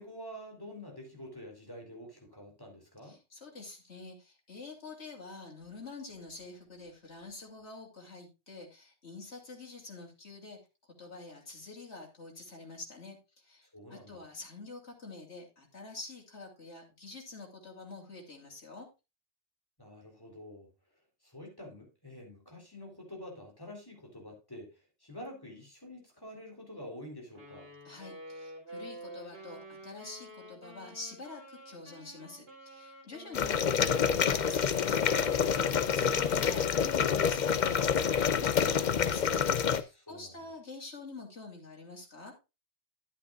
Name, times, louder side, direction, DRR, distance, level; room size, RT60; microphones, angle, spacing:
voice 1, 0.0-3.2 13.7-14.2 19.8-20.7 21.2-24.7 25.0-27.7 39.9-40.5, left 1 dB, 20° left, 3.6 m, -47 dB
voice 2, 3.0-10.6 11.0-18.9 27.8-42.3, left 3 dB, 75° left, 3.3 m, -47 dB
Wind instrument woodwind instrument, 27.4-36.9, equal, 60° right, 4.0 m, -48 dB
sound 1, 33.3-39.8, left 7 dB, 50° left, 0.7 m, -27 dB
12.5 x 8.4 x 2.4 m
omnidirectional pair, 1.2 m